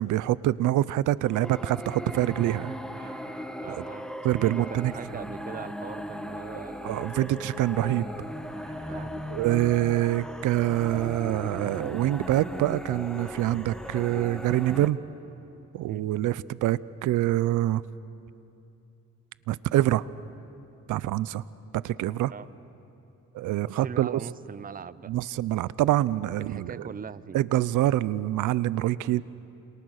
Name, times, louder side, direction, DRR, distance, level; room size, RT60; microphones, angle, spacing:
voice 1, 0.0-3.2 3.8-3.9 4.2-4.9 6.8-8.1 9.3-15.0 15.7-17.8 19.5-20.1 20.9-21.4 21.7-22.3 23.3-24.2 25.1-26.9 27.3-29.2, right 14 dB, 85° right, 19 dB, 0.7 m, -25 dB
sound 1, 1.2-14.9, equal, ahead, 1.6 m, -38 dB
voice 2, 3.6-4.1 4.3-7.7 8.9-9.1 15.9-16.3 22.3-22.5 23.6-25.1 26.4-27.4, right 7 dB, 30° right, 17 dB, 0.7 m, -40 dB
28.5 x 27.5 x 6.5 m, 2.8 s
cardioid pair, 90°, 30 cm